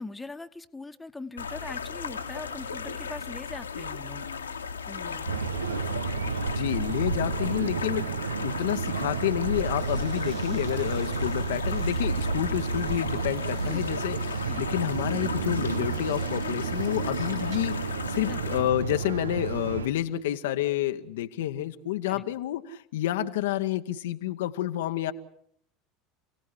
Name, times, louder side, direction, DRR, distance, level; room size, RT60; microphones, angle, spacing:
voice 1, 0.0-4.3 4.9-5.3 13.7-13.9 14.5-14.6 18.3-18.4 22.1-22.2, left 2 dB, 10° left, 6 dB, 1.4 m, -41 dB
sound 1, 1.4-18.6, left 6 dB, 80° left, 1.6 m, -37 dB
sound 2, 5.3-19.9, right 5 dB, 75° right, 0.9 m, -31 dB
voice 2, 6.5-25.1, left 13 dB, 65° left, 8 dB, 1.0 m, -29 dB
sound 3, 9.7-17.9, right 6 dB, 60° right, 3.1 m, -53 dB
29.0 x 18.0 x 8.4 m, 0.70 s
figure-of-eight pair, 75°, 0 cm